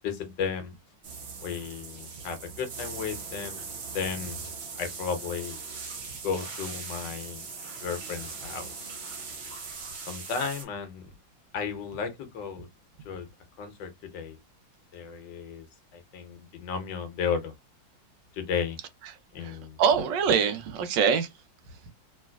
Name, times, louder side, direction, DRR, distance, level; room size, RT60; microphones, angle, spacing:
voice 1, 0.0-0.7 1.4-5.6 6.2-7.5 7.8-8.9 10.1-11.0 11.5-12.7 13.0-13.3 13.6-14.4 14.9-15.7 15.9-17.5 18.3-18.8 19.3-19.8, left 6 dB, 75° left, 1.4 m, -34 dB
sound 1, 1.0-10.6, right 5 dB, 45° right, 1.0 m, -40 dB
voice 2, 19.4-21.3 21.7-21.9, right 6 dB, 75° right, 1.3 m, -25 dB
3.2 x 3.1 x 2.3 m
omnidirectional pair, 2.0 m